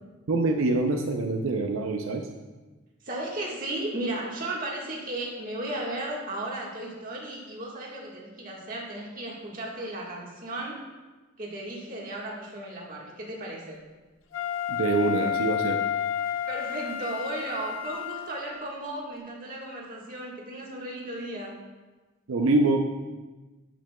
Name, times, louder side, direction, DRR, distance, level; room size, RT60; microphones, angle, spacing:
voice 1, 0.3-2.3 14.7-15.8 22.3-22.8, right 2 dB, 80° right, 3 dB, 0.6 m, -25 dB
voice 2, 3.0-10.8 11.4-13.8 16.5-21.6, right 1 dB, 40° right, -3 dB, 1.5 m, -35 dB
Wind instrument woodwind instrument, 14.3-18.6, left 9 dB, 70° left, 0.6 m, -30 dB
8.9 x 8.1 x 2.2 m, 1.2 s
head